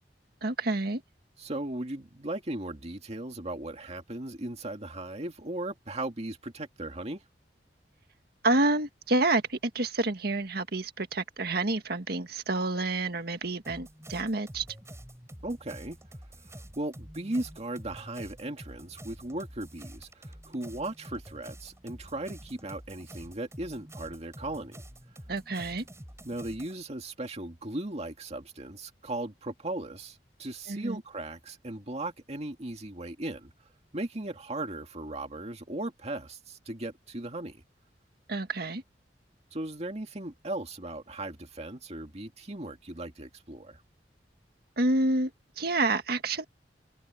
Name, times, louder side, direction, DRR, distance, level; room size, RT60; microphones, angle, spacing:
voice 1, 0.4-1.0 8.4-14.7 25.3-25.9 30.7-31.0 38.3-38.8 44.8-45.3 45.6-46.4, right 2 dB, 60° right, 1.8 m, -28 dB
voice 2, 1.4-7.2 15.4-16.0 16.4-24.8 26.2-33.5 33.9-37.6 39.5-43.8, right 1 dB, 40° right, 2.2 m, -37 dB
sound 1, 13.6-26.7, equal, 15° right, 6.5 m, -47 dB
head